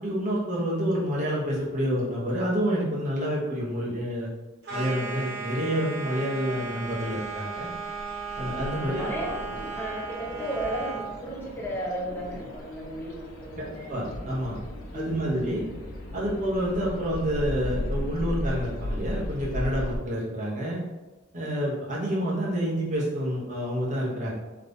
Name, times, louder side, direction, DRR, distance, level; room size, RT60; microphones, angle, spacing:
voice 1, 0.0-4.3 4.7-7.7 8.4-9.1 13.9-14.6 14.9-15.6 16.1-20.8 21.3-24.3, equal, 40° right, -5 dB, 1.2 m, -28 dB
sound 1, 4.6-11.2, right 4 dB, 55° right, 1.0 m, -36 dB
sound 2, 6.6-20.0, left 1 dB, 90° left, 0.9 m, -37 dB
voice 2, 8.7-14.3 14.9-15.5 22.3-22.7, equal, 10° left, -3 dB, 0.8 m, -35 dB
3.5 x 3.2 x 3.9 m, 1.1 s
head